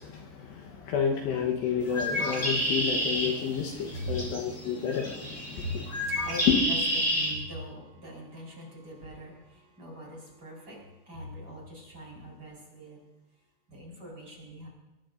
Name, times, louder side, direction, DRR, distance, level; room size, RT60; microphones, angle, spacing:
voice 1, 0.0-5.8, left 7 dB, 70° left, 1 dB, 3.0 m, -31 dB
Bird, 1.8-7.3, equal, 15° left, 6.0 m, -30 dB
voice 2, 3.1-13.0 13.7-14.7, equal, 30° right, -3 dB, 4.6 m, -42 dB
22.5 x 19.0 x 2.6 m, 1.0 s
omnidirectional pair, 5.6 m